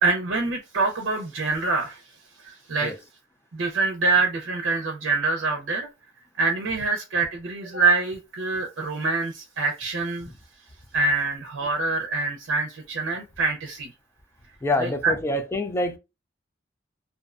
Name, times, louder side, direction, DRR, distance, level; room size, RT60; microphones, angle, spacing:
voice 1, 0.0-2.0 2.4-2.9 3.5-5.9 6.4-10.3 10.9-13.9 14.8-15.1, right 3 dB, 80° right, 0.5 m, -25 dB
voice 2, 14.6-16.0, left 2 dB, 15° left, 0.3 m, -26 dB
2.5 x 2.1 x 2.4 m
head